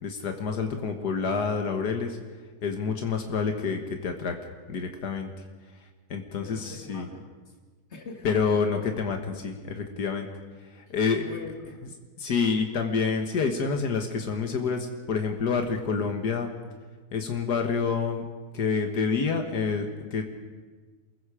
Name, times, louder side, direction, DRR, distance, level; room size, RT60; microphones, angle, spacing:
voice 1, 0.0-2.2 2.6-4.4 4.7-5.3 6.1-7.1 8.2-10.3 10.7-11.2 12.2-16.5 17.1-18.3 18.5-20.2, left 5 dB, 85° left, 4 dB, 2.0 m, -28 dB
voice 2, 6.4-7.5 7.9-8.6 11.1-11.8, left 2 dB, 45° left, 2 dB, 3.0 m, -43 dB
28.0 x 21.5 x 5.0 m, 1.4 s
omnidirectional pair, 1.7 m